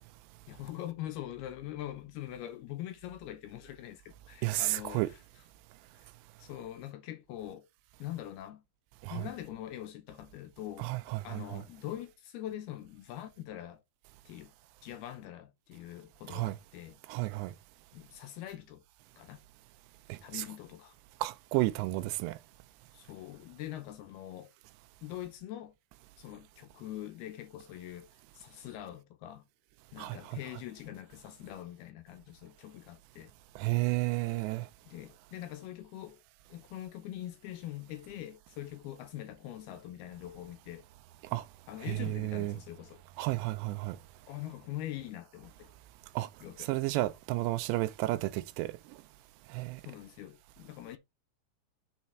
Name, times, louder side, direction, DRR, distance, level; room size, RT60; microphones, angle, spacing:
voice 1, 0.5-5.0 6.4-7.7 8.0-8.6 9.1-10.9 11.2-13.8 14.3-14.5 14.8-17.0 17.9-18.8 19.2-19.4 20.2-20.9 22.9-24.5 25.0-25.8 26.2-28.1 28.3-29.5 29.9-33.3 34.9-36.2 36.5-40.9 41.7-43.0 44.3-45.7 46.4-46.7 49.9-51.0, left 13 dB, 80° left, 2.5 m, -43 dB
voice 2, 4.4-5.1 9.0-9.3 10.8-11.6 16.3-16.6 17.1-17.5 20.1-20.5 21.2-22.4 30.0-30.4 33.6-34.7 41.3-41.4 41.8-42.6 43.2-44.0 46.2-46.3 46.6-48.7 49.5-49.8, right 18 dB, 85° right, 2.8 m, -32 dB
6.6 x 4.1 x 4.4 m
omnidirectional pair, 5.0 m